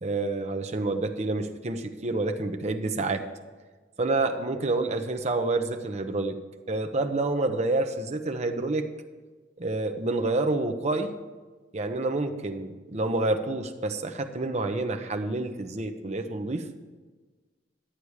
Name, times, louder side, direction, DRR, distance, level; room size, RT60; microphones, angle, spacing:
voice 1, 0.0-3.2 4.0-6.4 6.7-8.9 9.6-11.1 11.7-16.7, right 2 dB, 40° right, 6 dB, 0.8 m, -28 dB
11.5 x 8.5 x 4.9 m, 1.4 s
head